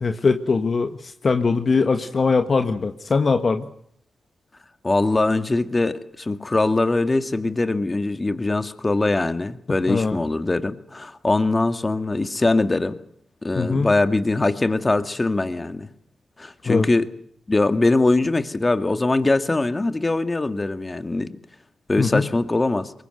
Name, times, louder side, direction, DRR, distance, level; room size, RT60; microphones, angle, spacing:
voice 1, 0.0-3.7 9.9-10.2 13.6-13.9 16.6-16.9 22.0-22.3, left 4 dB, 50° left, 8 dB, 1.5 m, -21 dB
voice 2, 4.8-13.0 13.4-15.9 16.4-17.1 17.5-21.3 21.9-22.9, left 2 dB, 30° left, 10 dB, 2.1 m, -22 dB
23.0 x 20.5 x 8.1 m, 0.69 s
supercardioid pair, 40°, 0 cm